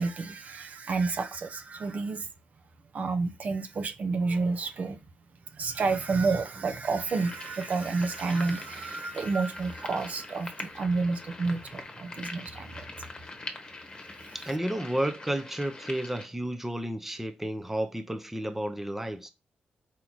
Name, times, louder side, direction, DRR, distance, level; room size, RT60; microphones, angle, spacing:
voice 1, 0.0-2.3 2.9-5.0 5.5-12.9 14.2-14.4, right 4 dB, 55° right, 0.7 m, -30 dB
sound 1, 7.1-16.3, left 2 dB, 25° left, 1.1 m, -43 dB
voice 2, 14.3-19.3, right 1 dB, 10° right, 0.6 m, -32 dB
4.6 x 2.8 x 3.9 m
cardioid pair, 105°, 3 cm